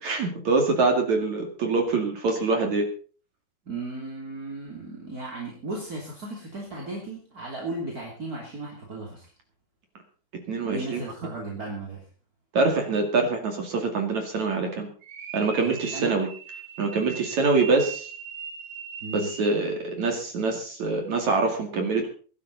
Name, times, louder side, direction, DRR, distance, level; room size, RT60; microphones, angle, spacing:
voice 1, 0.0-2.9 10.5-11.0 12.5-14.9 15.3-16.3 16.8-18.1 19.1-22.1, right 3 dB, 45° right, 3 dB, 2.9 m, -25 dB
voice 2, 3.6-9.3 10.6-12.0 15.6-16.2 19.0-19.3, right 2 dB, 25° right, -2 dB, 2.6 m, -36 dB
sound 1, 15.0-19.7, right 7 dB, 85° right, 5.3 m, -40 dB
21.5 x 11.5 x 4.1 m, 0.40 s
omnidirectional pair, 5.6 m